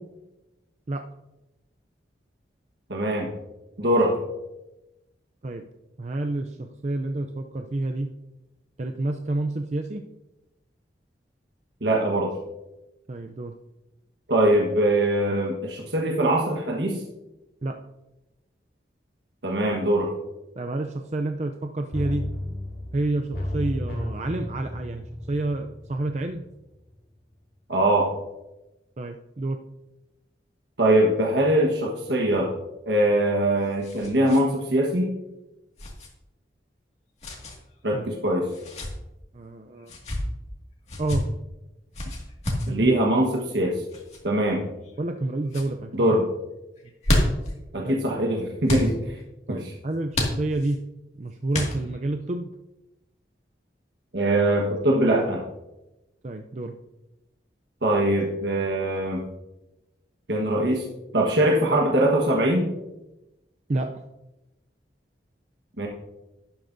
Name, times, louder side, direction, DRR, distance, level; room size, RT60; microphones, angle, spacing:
voice 1, 2.9-3.3 3.8-4.2 11.8-12.3 14.3-17.0 19.4-20.1 27.7-28.1 30.8-32.5 32.9-35.1 37.8-38.5 42.7-43.7 44.2-44.7 45.9-46.2 47.7-49.2 49.5-49.7 54.1-55.4 57.8-59.2 60.3-60.8 61.1-62.7 65.8-65.9, right 1 dB, 80° right, -1 dB, 1.4 m, -22 dB
voice 2, 6.0-8.1 8.8-10.0 13.1-13.5 17.6-17.7 20.6-22.2 22.9-26.4 29.0-29.6 37.9-38.1 39.3-39.9 41.0-41.2 42.7-42.9 45.0-45.9 47.8-48.0 49.5-50.8 51.2-52.5 56.2-56.7 63.7-63.9, right 2 dB, 40° right, 4 dB, 0.5 m, -29 dB
sound 1, 21.9-26.6 26.9-27.0, left 1 dB, 55° left, 2.2 m, -33 dB
sound 2, 33.1-34.4 34.7-34.8 35.8-36.1 37.2-37.6 38.5-38.9 39.8-40.2 40.9-41.2 41.9-42.7 43.9-44.2 44.8-45.2 45.5-45.7 46.8-47.5 48.6-48.9 50.1-50.8 51.5-52.0, left 1 dB, 35° left, 2.0 m, -29 dB
11.5 x 11.0 x 2.7 m, 0.97 s
head